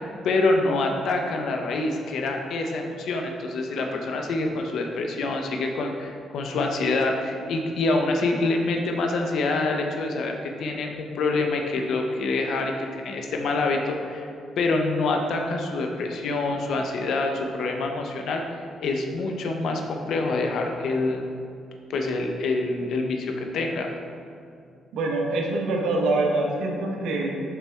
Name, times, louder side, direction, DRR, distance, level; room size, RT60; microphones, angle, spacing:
voice 1, 0.0-14.3 14.6-21.2 21.9-23.9, left 3 dB, 70° left, 3 dB, 0.6 m, -26 dB
voice 2, 24.9-27.3, right 2 dB, 80° right, 0 dB, 0.9 m, -25 dB
7.0 x 3.4 x 4.4 m, 2.4 s
cardioid pair, 90°, 0 cm